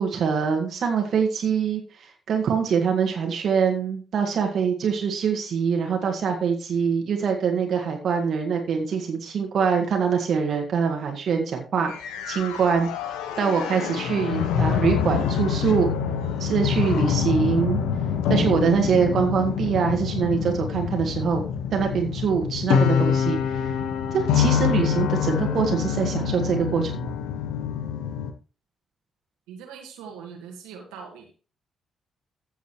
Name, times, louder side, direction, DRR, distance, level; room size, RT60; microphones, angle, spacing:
voice 1, 0.0-11.9 12.3-12.9 13.4-15.9 16.4-17.8 18.3-21.4 21.7-23.7 24.1-27.1, right 6 dB, 60° right, 2 dB, 1.8 m, -24 dB
sound 1, 11.9-28.3, left 7 dB, 70° left, 0.9 m, -25 dB
voice 2, 29.5-31.3, right 6 dB, 75° right, 2 dB, 1.9 m, -41 dB
15.0 x 7.1 x 3.1 m, 0.34 s
figure-of-eight pair, 40°, 0 cm